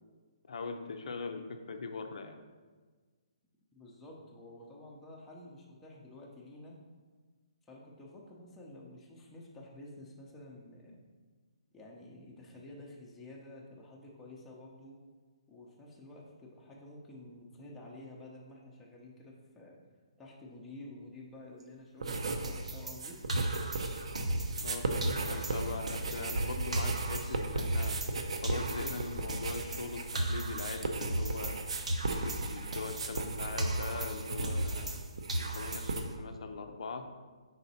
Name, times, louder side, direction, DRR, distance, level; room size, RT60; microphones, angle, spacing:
voice 1, 0.5-2.4 24.6-28.0 28.4-30.0 30.3-31.6 32.1-34.9 35.4-37.0, left 4 dB, 65° left, 5 dB, 0.5 m, -41 dB
voice 2, 3.7-6.8 7.7-11.0 11.7-15.0 15.5-19.8 20.2-23.2, left 1 dB, 5° left, -4 dB, 0.6 m, -50 dB
sound 1, 22.0-22.6 22.9-36.0, right 3 dB, 65° right, 0.6 m, -37 dB
sound 2, 22.4-24.8 25.0-28.2 28.4-31.6 31.9-35.0 35.3-36.1, right 1 dB, 90° right, 0.9 m, -36 dB
5.7 x 4.1 x 4.1 m, 1.4 s
hypercardioid pair, 165°, 4 cm